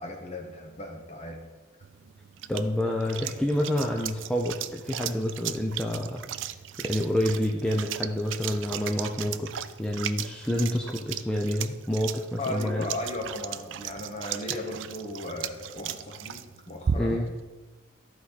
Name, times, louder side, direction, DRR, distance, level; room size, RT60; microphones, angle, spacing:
voice 1, 0.0-1.4 1.8-1.9 12.4-17.2, left 1 dB, 35° left, 2 dB, 1.3 m, -36 dB
sound 1, 1.8-17.4, right 9 dB, 70° right, 0.4 m, -37 dB
voice 2, 2.5-6.2 6.8-9.5 9.8-12.8 14.5-14.6 17.0-17.3, left 1 dB, 5° left, 0 dB, 0.6 m, -28 dB
14.5 x 4.8 x 4.1 m, 1.2 s
head